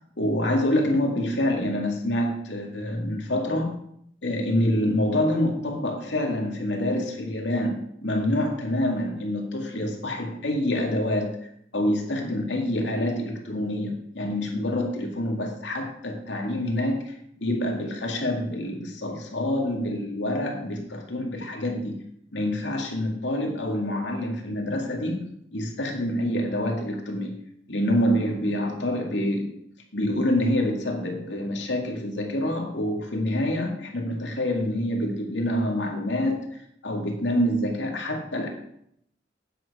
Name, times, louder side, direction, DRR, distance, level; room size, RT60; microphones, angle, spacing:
voice 1, 0.2-3.8 4.2-11.4 11.7-22.0 22.3-25.2 25.5-27.3 27.7-29.5 29.9-38.5, left 1 dB, 90° left, 1 dB, 2.2 m, -26 dB
9.1 x 7.7 x 4.9 m, 0.72 s
head